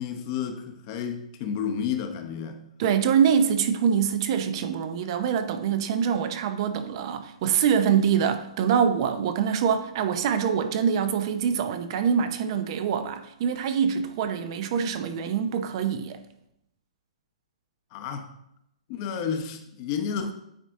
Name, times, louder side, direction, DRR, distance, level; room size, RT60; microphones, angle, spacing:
voice 1, 0.0-2.6 17.9-18.3 18.9-20.3, left 7 dB, 40° left, 0.9 m, -31 dB
voice 2, 2.8-16.2, right 7 dB, 45° right, 0.7 m, -24 dB
8.9 x 4.1 x 3.7 m
hypercardioid pair, 145°, 4 cm